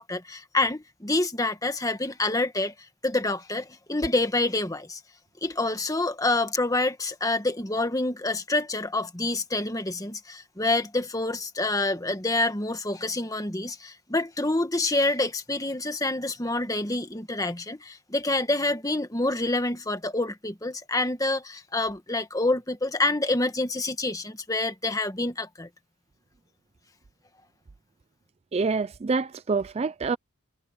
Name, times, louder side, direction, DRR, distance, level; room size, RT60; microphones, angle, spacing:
voice 1, 0.0-2.7 3.0-5.0 5.4-25.7, left 2 dB, 15° left, 1.5 m, -27 dB
voice 2, 28.5-30.2, right 4 dB, 30° right, 0.3 m, -26 dB
head